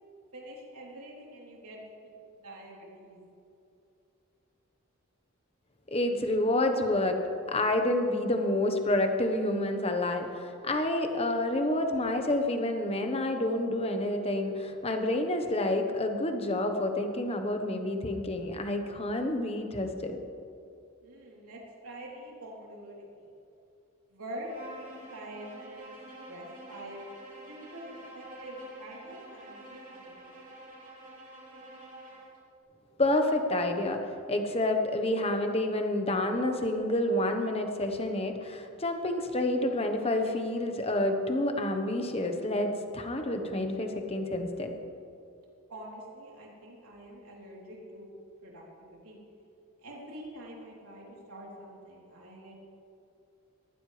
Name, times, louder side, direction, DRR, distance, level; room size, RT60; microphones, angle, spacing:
voice 1, 0.3-1.8 2.3-3.2 21.0-23.3 24.1-25.9 26.2-27.0 27.5-30.3 45.7-48.1 48.4-49.2 49.8-52.6, right 1 dB, 80° right, -4 dB, 3.5 m, -45 dB
voice 2, 5.9-7.2 7.5-20.2 33.0-34.0 34.3-44.7, left 1 dB, 25° left, 5 dB, 1.1 m, -29 dB
Bowed string instrument, 24.4-32.4, right 1 dB, 35° right, 3.3 m, -48 dB
19.5 x 15.0 x 3.4 m, 2.6 s
head